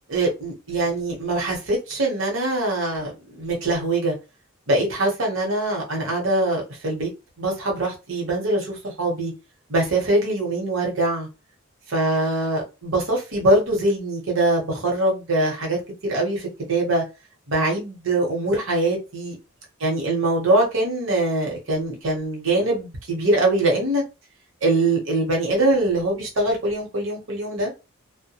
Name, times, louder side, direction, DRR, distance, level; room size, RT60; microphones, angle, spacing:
voice 1, 0.1-4.1 4.7-7.1 7.4-9.3 9.7-11.3 11.9-15.8 16.0-17.0 17.5-19.3 19.8-24.0 24.6-27.7, right 2 dB, 65° right, 0.9 m, -23 dB
2.2 x 2.1 x 2.8 m
head